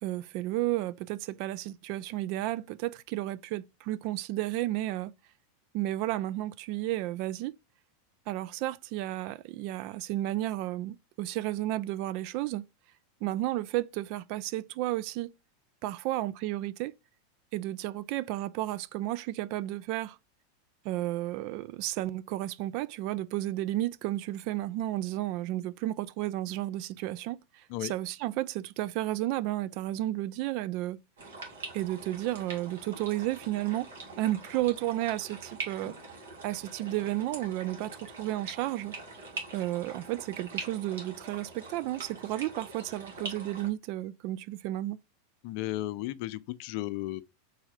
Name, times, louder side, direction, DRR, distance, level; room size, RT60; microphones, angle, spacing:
voice 1, 0.0-5.1 5.7-7.5 8.3-12.6 13.2-15.3 15.8-16.9 17.5-20.2 20.8-31.0 31.7-35.9 36.4-38.9 39.5-45.0, right 15 dB, 55° right, 0.3 m, -32 dB
sound 1, 31.2-43.7, right 3 dB, 75° right, 1.8 m, -43 dB
voice 2, 45.4-47.2, left 16 dB, 55° left, 0.4 m, -34 dB
4.1 x 2.7 x 4.8 m
hypercardioid pair, 100°, 0 cm